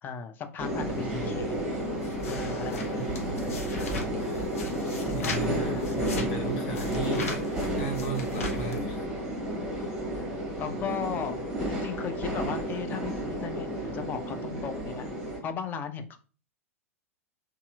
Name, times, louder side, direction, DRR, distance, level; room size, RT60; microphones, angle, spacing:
voice 1, 0.0-1.6 2.3-3.0 5.0-6.0 10.1-10.2 10.6-15.1 15.4-16.2, left 7 dB, 25° left, 8 dB, 0.3 m, -36 dB
sound 1, 0.6-15.4, right 1 dB, 5° right, 0.9 m, -32 dB
sound 2, 0.8-8.9, left 3 dB, 70° left, 0.6 m, -39 dB
voice 2, 1.0-1.6 2.9-3.7 5.0-9.1, right 4 dB, 50° left, 1 dB, 1.0 m, -36 dB
2.7 x 2.3 x 2.2 m, 0.38 s
figure-of-eight pair, 95°, 8 cm